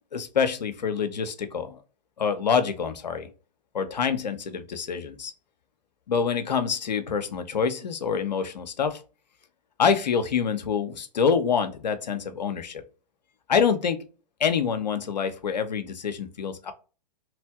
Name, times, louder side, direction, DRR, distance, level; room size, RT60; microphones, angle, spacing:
voice 1, 0.1-1.8 2.2-3.3 3.7-5.3 6.1-9.0 9.8-12.8 13.5-14.0 14.4-16.7, left 6 dB, 80° left, 8 dB, 0.7 m, -26 dB
3.1 x 2.5 x 3.5 m, 0.35 s
hypercardioid pair, 115°, 21 cm